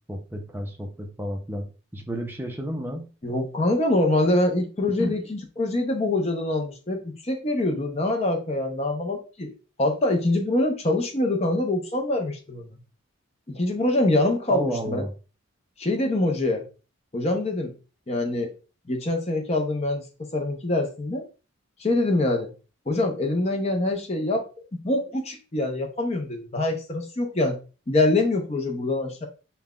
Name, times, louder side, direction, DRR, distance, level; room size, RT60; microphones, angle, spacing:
voice 1, 0.1-3.1 5.0-5.1 14.5-15.1, equal, 10° right, 2 dB, 0.5 m, -31 dB
voice 2, 3.2-9.5 9.8-12.7 13.5-15.0 15.8-16.6 17.1-17.7 18.1-18.5 18.9-20.0 20.3-21.3 21.8-22.5 22.9-24.4 24.8-27.6 27.9-29.3, left 2 dB, 30° left, 3 dB, 0.7 m, -24 dB
5.5 x 2.2 x 2.3 m, 0.34 s
head